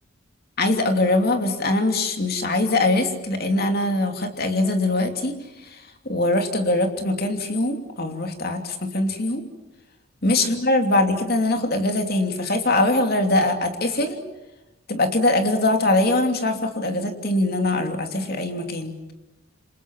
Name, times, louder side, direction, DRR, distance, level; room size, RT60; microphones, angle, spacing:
voice 1, 0.6-5.4 5.6-9.4 10.2-14.2 14.9-18.9, left 2 dB, 45° left, 5 dB, 3.0 m, -22 dB
28.5 x 26.5 x 7.4 m, 1.0 s
head